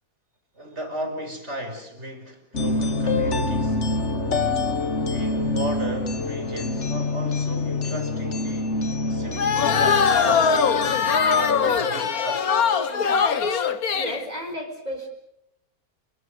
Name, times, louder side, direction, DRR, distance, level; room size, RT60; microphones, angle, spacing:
voice 1, 0.5-3.9 5.1-11.0 11.6-12.6, right 1 dB, 50° right, 5.7 m, -35 dB
sound 1, 2.5-11.8, left 3 dB, 50° left, 1.9 m, -26 dB
sound 2, 9.4-14.2, left 6 dB, 80° left, 1.9 m, -21 dB
voice 2, 13.9-15.1, equal, 25° right, 4.6 m, -33 dB
28.5 x 22.0 x 6.6 m
omnidirectional pair, 1.5 m